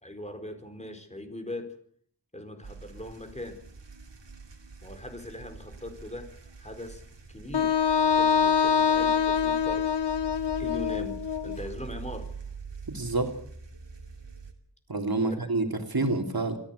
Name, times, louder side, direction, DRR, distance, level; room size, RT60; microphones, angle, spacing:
voice 1, 0.0-1.7 2.3-3.6 4.8-7.0 7.3-9.9 10.5-12.3 15.2-15.5, left 1 dB, 15° left, 6 dB, 4.3 m, -40 dB
sound 1, 2.6-14.5, right 5 dB, 80° right, 3.1 m, -44 dB
Wind instrument woodwind instrument, 7.5-11.6, left 6 dB, 70° left, 1.1 m, -24 dB
voice 2, 12.9-13.3 14.9-16.6, right 3 dB, 55° right, 4 dB, 3.4 m, -28 dB
22.5 x 15.0 x 8.4 m, 0.65 s
wide cardioid pair, 50°, 43 cm